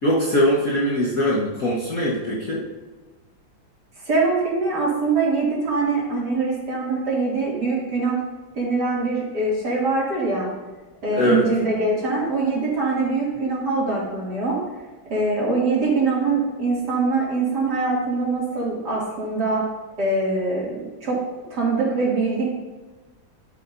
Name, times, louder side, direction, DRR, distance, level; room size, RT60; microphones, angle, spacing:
voice 1, 0.0-2.6 11.1-11.5, equal, 45° left, -6 dB, 1.8 m, -21 dB
voice 2, 4.1-8.2 8.5-10.5 11.0-14.6 15.1-19.6 20.0-21.2 21.5-22.5, right 3 dB, 55° right, -5 dB, 3.2 m, -23 dB
12.0 x 8.9 x 2.7 m, 1.2 s
omnidirectional pair, 2.2 m